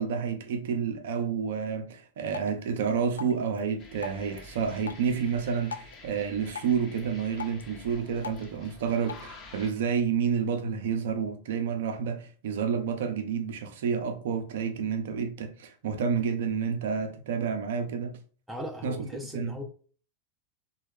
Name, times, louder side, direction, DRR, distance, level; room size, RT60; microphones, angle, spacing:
voice 1, 0.0-18.1 18.8-19.1 19.3-19.5, right 6 dB, 55° right, 0.5 m, -29 dB
Drip, 2.3-9.3, left 6 dB, 70° left, 0.3 m, -45 dB
sound 1, 3.8-9.7, left 2 dB, 30° left, 0.7 m, -49 dB
voice 2, 18.5-19.6, left 1 dB, 5° right, 0.5 m, -38 dB
3.0 x 2.2 x 3.4 m
figure-of-eight pair, 90°, 0 cm